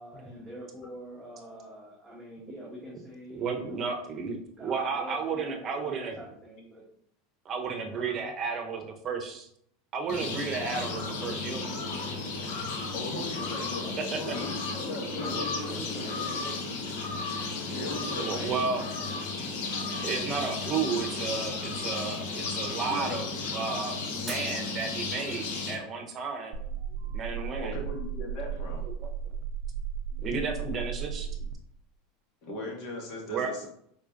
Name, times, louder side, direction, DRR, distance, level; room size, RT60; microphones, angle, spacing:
voice 1, 0.0-3.9 4.6-6.8 7.9-8.3 13.1-14.5 15.1-16.5, equal, ahead, -9 dB, 1.4 m, -44 dB
voice 2, 3.3-6.1 7.4-9.5 9.9-11.8 14.1-14.2 14.8-15.1 16.2-16.6 18.2-19.2 20.0-23.3 23.5-26.6 27.1-27.8 28.8-29.1 30.2-31.3 33.1-33.7, right 5 dB, 35° right, 4 dB, 0.9 m, -33 dB
sound 1, 10.1-25.7, left 3 dB, 70° left, 0.9 m, -34 dB
voice 3, 12.9-16.3 17.7-18.6 22.9-23.4 27.6-28.8 32.4-33.7, left 2 dB, 50° left, -1 dB, 1.7 m, -38 dB
Shatter, 24.3-25.5 26.1-26.5 27.1-27.2, right 2 dB, 15° right, 2.0 m, -44 dB
sound 2, 26.5-31.5, right 7 dB, 70° right, 0.4 m, -35 dB
4.8 x 4.3 x 2.5 m, 0.69 s
supercardioid pair, 115°, 0 cm